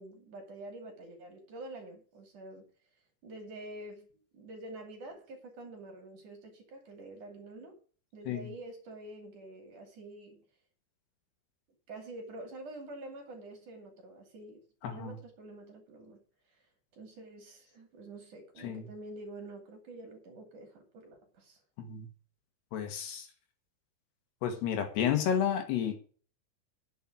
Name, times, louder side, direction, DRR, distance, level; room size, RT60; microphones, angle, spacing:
voice 1, 0.0-2.7 3.2-4.1 4.3-7.8 8.1-10.4 11.9-16.2 16.5-21.6, right 2 dB, 50° right, 3.6 m, -47 dB
voice 2, 14.8-15.2 18.6-18.8 21.8-22.1 22.7-23.3 24.4-26.0, left 8 dB, 70° left, 3.3 m, -31 dB
10.0 x 7.3 x 7.2 m
omnidirectional pair, 5.3 m